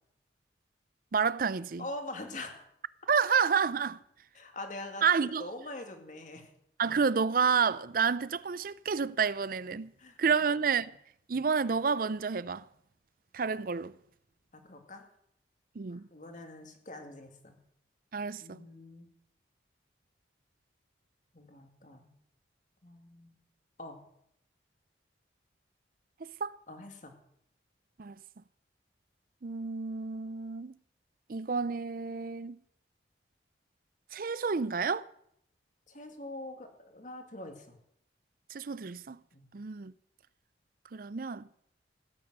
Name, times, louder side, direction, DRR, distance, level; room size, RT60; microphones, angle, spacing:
voice 1, 1.1-1.9 3.1-4.0 5.0-5.5 6.8-9.9 10.2-10.9 11.3-12.7 13.3-13.9 15.8-16.1 18.1-18.6 26.2-26.6 28.0-28.2 29.4-30.8 31.3-32.6 34.1-35.1 38.5-39.2 39.5-39.9 40.9-41.5, right 5 dB, 50° right, 0.5 m, -29 dB
voice 2, 1.8-2.7 4.3-5.0 5.4-6.5 10.0-10.9 14.5-15.1 15.9-17.6 18.4-19.1 21.3-22.1 22.8-23.4 23.8-24.1 26.7-27.2 35.9-37.8 39.3-39.5, left 2 dB, 45° left, 2.3 m, -44 dB
16.0 x 8.8 x 7.9 m
head